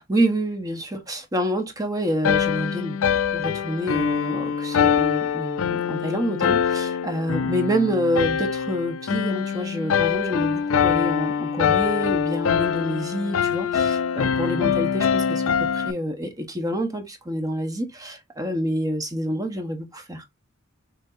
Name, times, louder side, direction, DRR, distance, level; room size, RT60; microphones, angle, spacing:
voice 1, 0.1-20.2, equal, 15° right, 0.9 m, -27 dB
sound 1, 2.2-15.9, left 7 dB, 70° left, 0.4 m, -23 dB
6.0 x 2.8 x 2.5 m
head